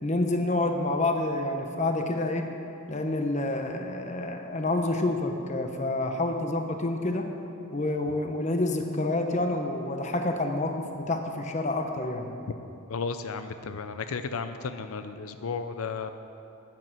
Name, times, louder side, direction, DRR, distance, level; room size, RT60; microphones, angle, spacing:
voice 1, 0.0-2.5 2.9-7.3 7.7-12.3, left 2 dB, 35° left, 4 dB, 1.0 m, -28 dB
voice 2, 12.9-16.1, left 5 dB, 85° left, 9 dB, 0.6 m, -34 dB
10.5 x 10.5 x 7.6 m, 2.8 s
head